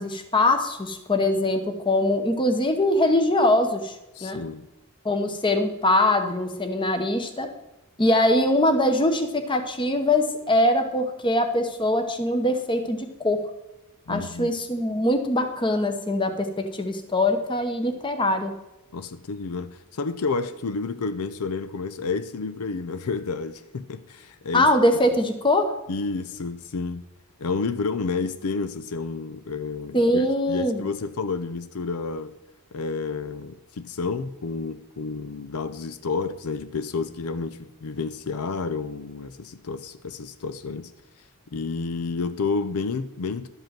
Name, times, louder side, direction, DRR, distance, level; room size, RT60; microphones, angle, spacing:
voice 1, 0.0-3.9 4.2-4.4 5.0-7.5 8.0-13.5 14.1-18.5 24.5-25.7 29.9-30.8, left 1 dB, 20° left, 1.0 m, -22 dB
voice 2, 4.1-4.7 14.1-14.5 18.9-24.7 25.9-27.0 27.4-32.3 32.7-40.9 41.5-43.5, left 4 dB, 80° left, 0.5 m, -30 dB
12.0 x 5.3 x 7.4 m
head